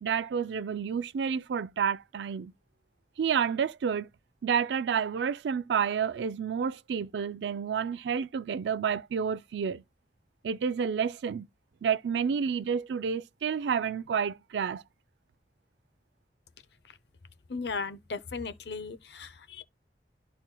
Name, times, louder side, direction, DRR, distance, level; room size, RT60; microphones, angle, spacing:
voice 1, 0.0-2.5 3.2-4.1 4.4-9.8 10.4-11.5 11.8-14.8, right 7 dB, 85° right, 0.4 m, -30 dB
voice 2, 17.5-19.6, left 4 dB, 80° left, 0.7 m, -36 dB
12.0 x 4.2 x 2.2 m
head